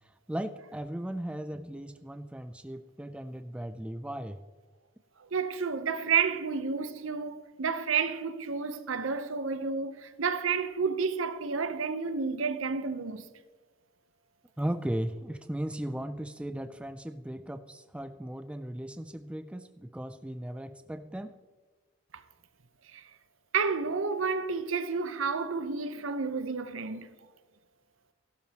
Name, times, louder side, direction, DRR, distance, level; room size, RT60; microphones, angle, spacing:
voice 1, 0.0-4.4 14.6-21.3, right 1 dB, 5° right, 0.3 m, -37 dB
voice 2, 5.3-13.3 22.1-22.2 22.9-23.0 23.5-27.1, right 5 dB, 75° right, 0.8 m, -30 dB
15.5 x 12.5 x 2.9 m
head